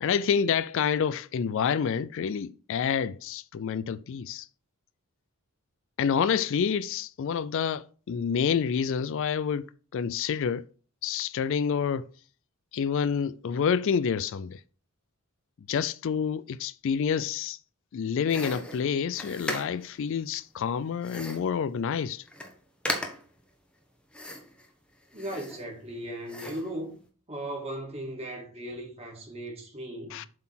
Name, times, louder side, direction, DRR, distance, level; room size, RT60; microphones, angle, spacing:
voice 1, 0.0-4.5 6.0-10.6 11.0-12.0 12.7-14.6 15.7-17.6 17.9-22.2 30.1-30.3, left 7 dB, 60° left, 0.3 m, -28 dB
sound 1, 18.3-20.0 21.0-21.5 22.0-22.1 22.3-22.5 22.8-23.4 24.1-24.7 25.1-25.9 26.3-26.7, left 1 dB, 5° left, 1.0 m, -36 dB
voice 2, 25.1-27.0 27.3-30.2, right 1 dB, 30° right, 2.1 m, -37 dB
7.5 x 4.0 x 5.8 m
head